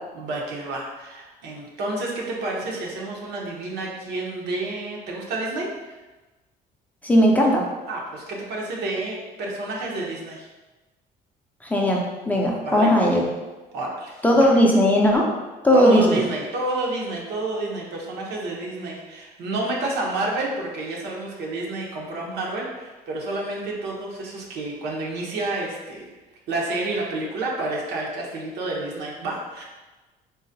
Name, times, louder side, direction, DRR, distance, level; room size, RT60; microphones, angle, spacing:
voice 1, 0.1-6.0 7.9-10.5 12.6-12.9 13.7-14.2 15.7-26.1 26.5-29.6, right 2 dB, 75° right, -2 dB, 0.8 m, -29 dB
voice 2, 7.0-7.7 11.6-13.2 14.2-15.3 15.6-16.2, equal, 10° left, -2 dB, 0.4 m, -18 dB
3.8 x 2.1 x 2.6 m, 1.2 s
cardioid pair, 110°, 17 cm